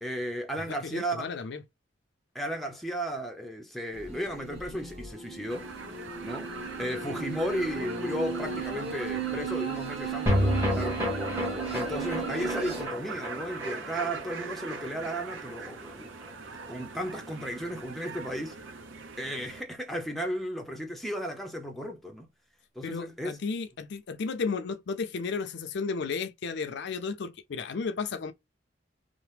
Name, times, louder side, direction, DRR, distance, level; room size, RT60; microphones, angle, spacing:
voice 1, 0.0-1.3 2.3-5.7 6.2-6.5 6.8-11.1 11.7-16.1 16.7-18.6 19.2-22.3 22.8-23.3, equal, ahead, 0.5 m, -34 dB
voice 2, 0.7-1.6 22.8-28.3, left 4 dB, 60° left, 0.4 m, -33 dB
sound 1, 3.9-12.9, right 5 dB, 30° right, 1.0 m, -36 dB
sound 2, 5.5-19.6, right 4 dB, 75° right, 0.6 m, -42 dB
sound 3, 10.3-16.7 17.0-17.1 17.3-17.4, left 1 dB, 15° right, 1.0 m, -31 dB
2.8 x 2.0 x 3.2 m
head